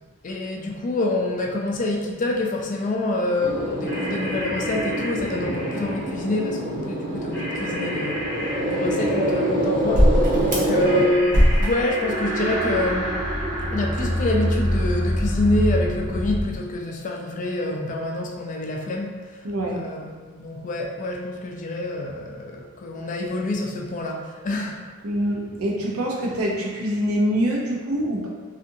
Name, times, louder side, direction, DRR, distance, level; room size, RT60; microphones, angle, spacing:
voice 1, 0.2-8.2 8.7-10.1 10.5-13.1 13.7-19.1 19.7-24.8, left 2 dB, 35° left, 1 dB, 0.3 m, -26 dB
sound 1, 3.4-11.0 11.3-16.4, equal, 40° right, 0.6 m, -24 dB
sound 2, 3.8-6.3 7.3-9.7 10.8-13.2, equal, 15° left, 0.8 m, -35 dB
voice 2, 19.4-19.8 25.0-28.3, equal, 85° right, -1 dB, 0.5 m, -25 dB
2.6 x 2.4 x 2.6 m, 1.4 s
head